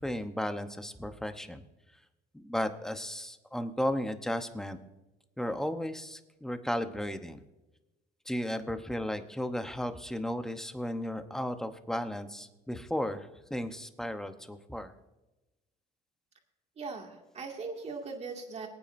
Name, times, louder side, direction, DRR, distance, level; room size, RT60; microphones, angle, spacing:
voice 1, 0.0-1.6 2.3-4.8 5.4-7.4 8.3-14.9, equal, 5° left, 8 dB, 0.9 m, -34 dB
voice 2, 16.8-18.7, right 4 dB, 40° right, 2 dB, 2.2 m, -39 dB
23.0 x 9.0 x 2.6 m, 1.1 s
cardioid pair, 110°, 17 cm